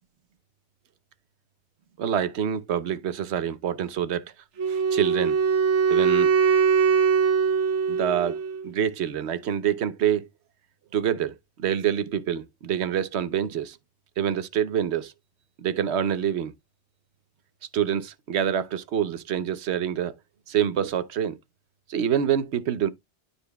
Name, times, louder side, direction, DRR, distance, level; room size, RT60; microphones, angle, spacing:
voice 1, 2.0-4.3 4.7-5.4 5.9-6.3 7.9-8.4 8.6-10.3 10.9-11.3 11.6-13.8 14.2-15.1 15.6-16.5 17.7-20.2 20.5-21.4 21.9-22.9, right 9 dB, 75° right, 0.9 m, -26 dB
Wind instrument woodwind instrument, 4.6-8.7, right 6 dB, 90° right, 1.2 m, -22 dB
12.5 x 4.3 x 2.2 m
omnidirectional pair, 1.2 m